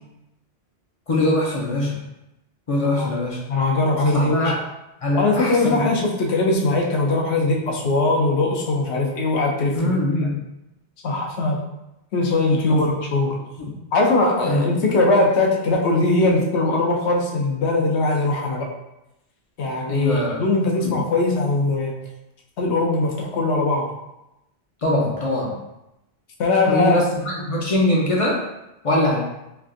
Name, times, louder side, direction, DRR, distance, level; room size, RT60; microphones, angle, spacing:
voice 1, 1.1-2.0 2.7-3.4 4.0-4.6 5.0-5.9 9.7-10.4 12.7-12.8 13.6-13.7 14.4-14.7 19.9-20.4 20.8-20.9 24.8-25.6 26.7-28.5 28.8-29.2, left 1 dB, 50° left, -3 dB, 0.4 m, -22 dB
voice 2, 3.5-4.5 5.2-10.0 11.0-11.6 12.1-13.4 13.9-18.7 19.6-22.0 22.6-23.9 26.4-27.0, left 2 dB, 80° left, 0 dB, 0.9 m, -20 dB
3.3 x 2.4 x 2.4 m, 0.90 s
omnidirectional pair, 1.1 m